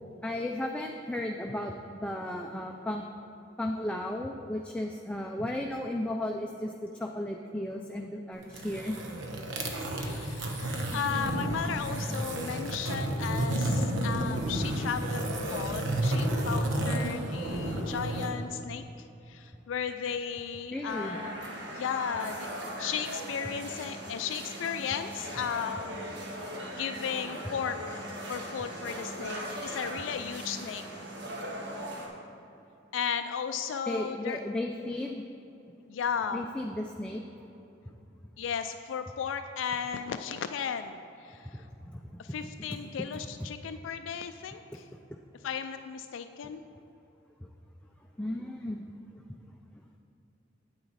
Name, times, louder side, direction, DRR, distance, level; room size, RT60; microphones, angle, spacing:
voice 1, 0.2-3.0 3.6-8.9 20.7-21.2 33.9-35.2 36.3-37.2 41.5-42.0 43.4-43.5 48.2-48.8 49.1-49.2, left 1 dB, 5° left, 1 dB, 0.4 m, -34 dB
sound 1, 8.4-18.3, right 1 dB, 90° right, 1.0 m, -31 dB
voice 2, 10.0-21.4 21.7-22.5 22.8-26.0 26.7-28.0 28.3-30.8 32.9-34.4 35.1-35.2 35.9-36.4 38.4-41.6 42.2-44.8 45.4-46.6, left 7 dB, 85° left, 8 dB, 0.3 m, -35 dB
sound 2, 20.9-32.1, equal, 65° right, 1.4 m, -39 dB
9.0 x 8.9 x 4.0 m, 2.8 s
head